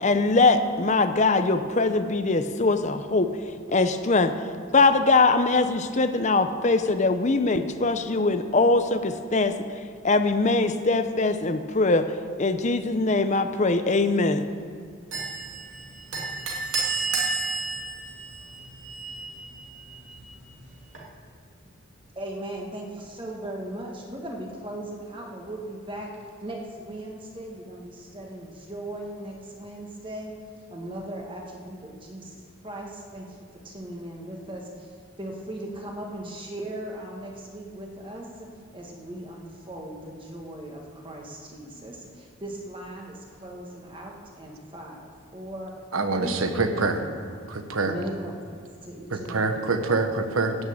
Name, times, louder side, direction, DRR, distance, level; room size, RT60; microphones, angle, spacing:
voice 1, 0.0-3.3 3.7-4.3 4.7-9.5 10.0-12.1 12.4-14.5, left 3 dB, 35° left, 9 dB, 0.6 m, -22 dB
sound 1, 15.1-21.0, right 4 dB, 65° right, 2.4 m, -32 dB
voice 2, 22.2-26.1 26.4-30.3 30.7-34.9 35.2-38.3 38.7-45.7 46.1-47.0 47.8-49.8, right 1 dB, 25° right, 0 dB, 1.6 m, -38 dB
voice 3, 45.9-47.0 47.5-47.9 49.1-50.5, right 3 dB, 90° right, 7 dB, 1.1 m, -25 dB
14.5 x 6.5 x 8.7 m, 2.1 s
head